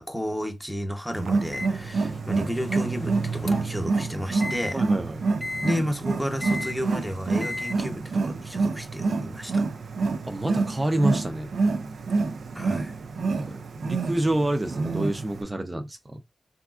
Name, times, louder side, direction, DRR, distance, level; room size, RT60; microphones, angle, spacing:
voice 1, 0.0-4.8 5.6-9.6 12.5-12.9, equal, ahead, 0.8 m, -32 dB
Wild animals, 1.1-15.4, right 4 dB, 85° right, 0.3 m, -28 dB
Microwave oven, 1.5-3.8 4.4-4.7 5.4-5.7 6.4-6.8 7.4-7.7, left 2 dB, 40° left, 0.3 m, -35 dB
voice 2, 4.7-5.2 10.2-11.6 13.4-16.2, right 1 dB, 25° right, 0.5 m, -28 dB
3.4 x 2.4 x 2.3 m
cardioid pair, 55°, 0 cm